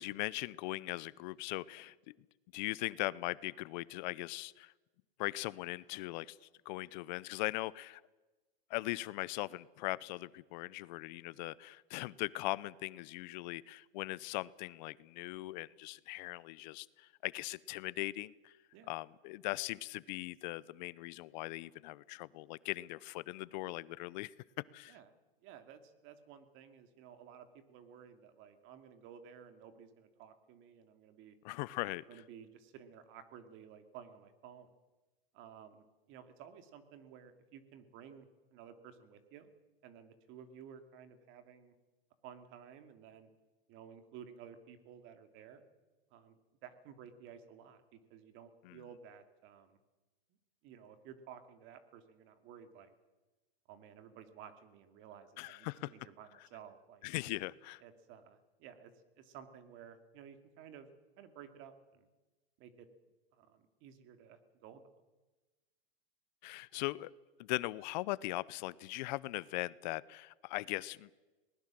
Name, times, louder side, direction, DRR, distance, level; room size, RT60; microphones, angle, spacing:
voice 1, 0.0-2.1 2.5-4.7 5.2-6.4 6.7-8.0 8.7-18.5 18.9-24.3 24.7-25.0 31.4-32.0 48.6-48.8 55.4-55.9 57.0-57.8 66.4-67.1 67.4-71.1, left 20 dB, 50° left, 21 dB, 0.7 m, -40 dB
voice 2, 25.4-31.4 32.1-34.7 35.3-38.3 38.5-39.5 39.8-41.7 42.2-43.3 43.7-45.6 46.1-49.8 50.6-52.9 53.7-57.0 57.8-58.9 59.2-60.9 61.2-62.1 62.6-62.9 63.3-64.8, right 8 dB, 45° right, 9 dB, 2.7 m, -54 dB
21.5 x 19.5 x 7.6 m, 1.2 s
hypercardioid pair, 130°, 29 cm